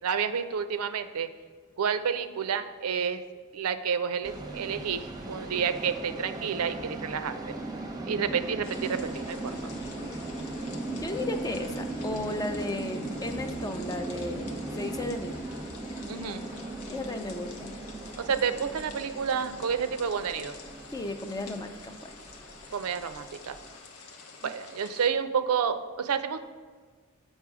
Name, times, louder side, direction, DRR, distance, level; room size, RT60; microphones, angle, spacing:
voice 1, 0.0-1.3 1.8-3.2 3.5-7.3 8.1-9.6 16.1-16.5 18.2-20.5 22.7-23.6 24.4-26.4, right 7 dB, 80° right, 10 dB, 0.5 m, -30 dB
sound 1, 4.2-23.8, right 2 dB, 20° right, 0.7 m, -38 dB
sound 2, 8.6-25.1, left 4 dB, 80° left, 0.9 m, -49 dB
voice 2, 10.8-15.4 16.9-17.7 20.9-22.1 24.4-24.5, left 2 dB, 15° left, 7 dB, 0.4 m, -35 dB
7.3 x 5.3 x 4.8 m, 1.5 s
head